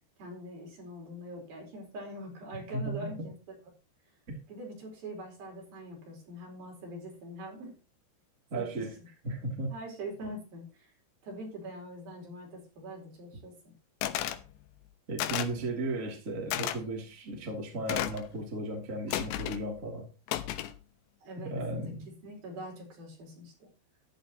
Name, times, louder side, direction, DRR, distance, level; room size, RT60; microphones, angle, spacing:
voice 1, 0.2-3.3 4.5-7.8 8.5-8.9 9.7-10.9 11.2-13.7 21.2-21.5 22.0-23.7, right 1 dB, 60° right, 6.2 m, -43 dB
voice 2, 2.7-3.3 8.5-8.9 9.2-9.7 15.1-20.0 21.4-22.1, right 2 dB, 20° right, 2.7 m, -35 dB
sound 1, 14.0-14.4 15.2-15.6 16.5-16.8 17.9-18.3 19.1-19.6 20.3-20.8, left 12 dB, 90° left, 3.2 m, -32 dB
13.0 x 11.5 x 3.0 m
omnidirectional pair, 4.8 m